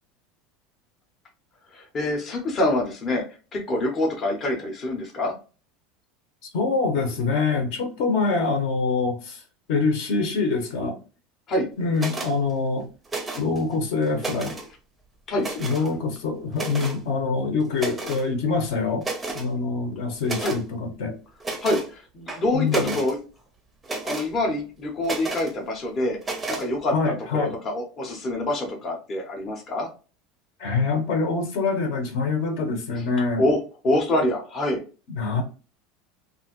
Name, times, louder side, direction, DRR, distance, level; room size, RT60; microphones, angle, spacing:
voice 1, 1.7-5.3 11.5-11.7 15.3-15.5 20.4-20.5 21.6-23.2 24.0-29.9 33.4-33.6 33.8-34.8, left 1 dB, 25° left, 0.7 m, -26 dB
voice 2, 6.5-9.4 9.7-11.0 11.8-12.9 13.4-14.5 15.5-19.1 19.3-21.2 22.5-23.0 26.9-27.6 30.6-33.5 35.1-35.4, left 4 dB, 60° left, 1.0 m, -25 dB
sound 1, 12.0-12.3 13.1-13.6 14.0-14.7 15.4-15.9 16.5-17.0 17.8-18.3 18.7-18.8 19.0-19.5 20.2-20.6 21.4-21.9 22.3-23.1 23.8-24.3 25.0-25.5 26.2-26.7, right 3 dB, 10° right, 0.5 m, -32 dB
2.9 x 2.5 x 2.8 m
supercardioid pair, 160°, 0 cm